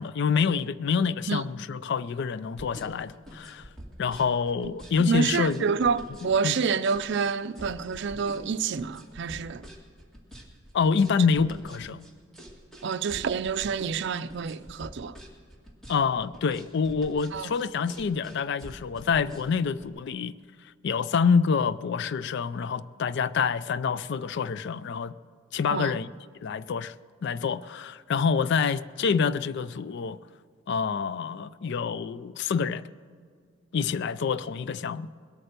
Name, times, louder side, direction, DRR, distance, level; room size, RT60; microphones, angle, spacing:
voice 1, 0.0-3.7 4.0-5.7 6.4-6.6 10.7-12.0 15.9-20.3 20.8-25.1 25.5-26.1 26.4-26.9 27.2-30.2 30.7-32.9 33.7-35.1, left 5 dB, 60° left, 0.4 m, -27 dB
sound 1, 2.5-19.9, equal, 5° left, 1.9 m, -46 dB
voice 2, 5.1-9.7 11.2-11.3 12.8-15.2 17.3-17.5 25.7-26.0, right 5 dB, 65° right, 0.5 m, -28 dB
21.5 x 8.7 x 6.7 m
head